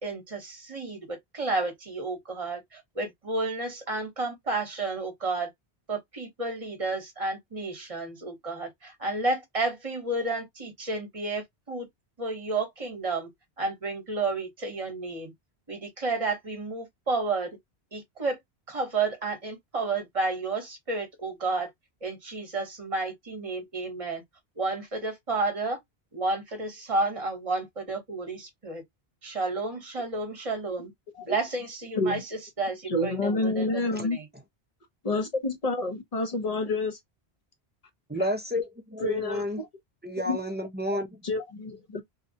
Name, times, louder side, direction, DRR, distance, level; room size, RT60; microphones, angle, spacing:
voice 1, 0.0-5.5 5.9-11.9 12.2-13.3 13.6-15.3 15.7-17.5 17.9-18.4 18.7-21.7 22.0-24.2 24.6-25.8 26.1-28.8 29.2-30.9 31.3-34.3, right 3 dB, 35° right, 1.1 m, -31 dB
voice 2, 32.9-34.2 35.0-37.0 39.0-39.7 40.2-40.4 40.9-41.0 41.2-42.0, left 2 dB, 40° left, 0.8 m, -28 dB
voice 3, 38.1-39.6 40.0-41.1, left 1 dB, 15° right, 0.4 m, -30 dB
2.9 x 2.3 x 2.6 m
omnidirectional pair, 1.1 m